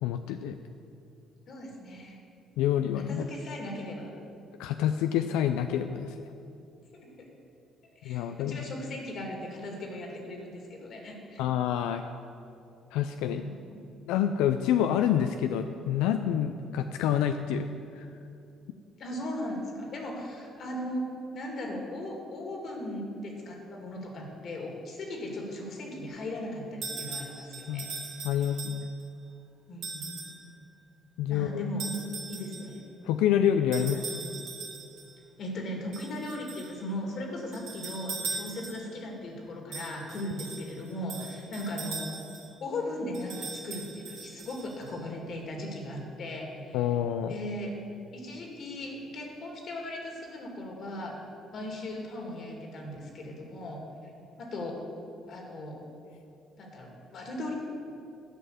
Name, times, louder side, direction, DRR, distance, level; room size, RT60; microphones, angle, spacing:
voice 1, 0.0-0.6 2.6-3.3 4.6-6.2 8.0-8.6 11.4-12.0 12.9-13.4 14.1-17.7 18.0-18.1 27.7-27.9 28.2-28.9 31.2-31.7 33.0-34.0 46.7-47.3, left 10 dB, 90° left, 7 dB, 0.4 m, -27 dB
voice 2, 1.5-2.2 3.1-4.1 6.9-7.1 8.0-11.4 13.4-13.8 19.0-21.0 21.3-27.9 28.2-28.5 29.7-30.2 31.3-31.9 32.3-32.8 33.8-34.1 35.4-42.1 42.6-46.9 47.3-47.7 48.1-51.1 51.5-53.8 54.4-54.8 55.3-55.8 56.6-57.5, left 1 dB, 60° left, 1 dB, 2.3 m, -38 dB
sound 1, 26.8-29.1 29.8-30.4 31.8-32.8 33.7-35.1 35.9-36.8 37.5-39.0 39.7-42.5 43.1-44.9, right 4 dB, 75° right, 2.6 m, -40 dB
11.0 x 5.6 x 8.2 m, 2.6 s
supercardioid pair, 80°, 0 cm